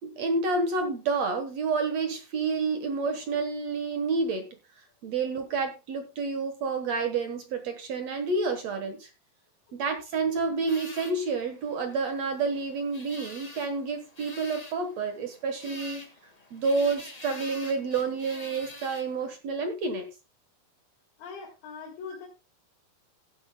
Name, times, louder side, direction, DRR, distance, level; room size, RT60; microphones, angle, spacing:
voice 1, 0.0-4.5 5.0-9.1 9.7-16.1 16.5-20.1, right 4 dB, 60° right, 7 dB, 2.0 m, -29 dB
sound 1, 10.7-19.4, left 2 dB, 30° left, 0.7 m, -47 dB
voice 2, 21.2-22.3, left 5 dB, 80° left, -1 dB, 3.7 m, -41 dB
16.0 x 11.0 x 2.2 m, 0.27 s
omnidirectional pair, 4.2 m